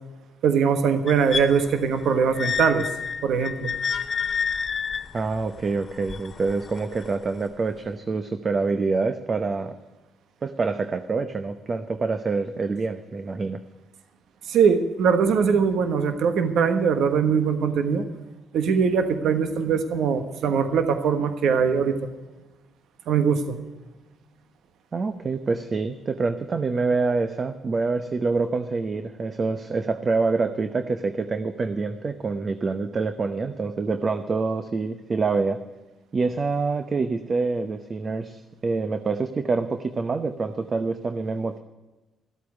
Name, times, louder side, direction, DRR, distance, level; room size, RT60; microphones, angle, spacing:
voice 1, 0.4-2.9 3.2-3.7 14.5-18.0 18.5-22.1 23.1-23.6, right 6 dB, 75° right, 8 dB, 1.3 m, -21 dB
sound 1, 1.1-7.1 7.9-8.0, left 6 dB, 40° left, 0.7 m, -30 dB
voice 2, 5.1-9.8 10.4-13.6 24.9-35.6 36.1-41.6, right 4 dB, 40° right, 9 dB, 0.9 m, -26 dB
14.0 x 8.4 x 9.4 m, 1.1 s
cardioid pair, 90°, 0 cm